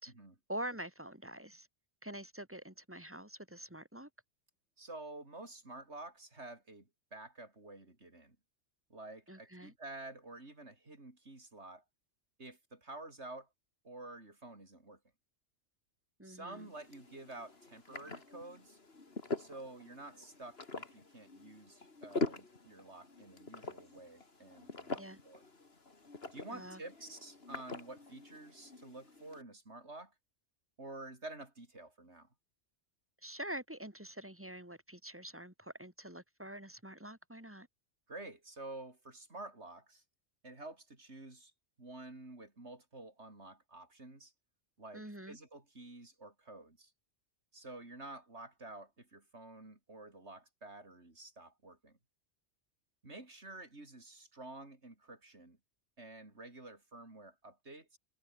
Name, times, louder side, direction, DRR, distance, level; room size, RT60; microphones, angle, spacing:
voice 1, 0.5-1.7 2.0-4.1 9.3-9.7 16.2-16.7 25.0-25.2 26.5-26.8 33.2-37.7 44.9-45.4, right 1 dB, 10° right, 2.4 m, -45 dB
voice 2, 4.8-8.4 8.9-11.8 12.4-13.5 13.8-15.0 16.2-18.8 19.4-25.4 26.3-30.1 30.8-32.3 38.1-40.0 40.4-41.5 41.8-44.3 44.8-46.9 47.5-52.0 53.0-55.6 56.0-58.0, right 2 dB, 65° right, 5.0 m, -50 dB
sound 1, 16.5-29.4, left 3 dB, 55° left, 2.9 m, -44 dB
omnidirectional pair, 1.2 m